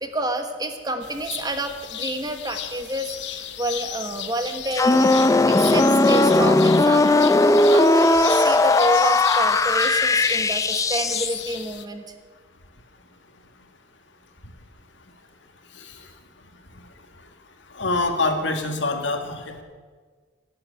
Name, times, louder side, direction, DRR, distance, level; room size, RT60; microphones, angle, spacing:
voice 1, 0.0-5.1 5.5-7.3 7.6-12.0, right 1 dB, 20° right, 6 dB, 1.3 m, -29 dB
sound 1, 1.0-11.8, left 10 dB, 65° left, 1.0 m, -35 dB
sound 2, 4.7-11.4, left 2 dB, 20° left, 0.5 m, -18 dB
voice 2, 15.7-16.1 17.7-19.6, left 2 dB, 85° left, 5 dB, 1.9 m, -25 dB
17.5 x 8.1 x 9.0 m, 1.5 s
head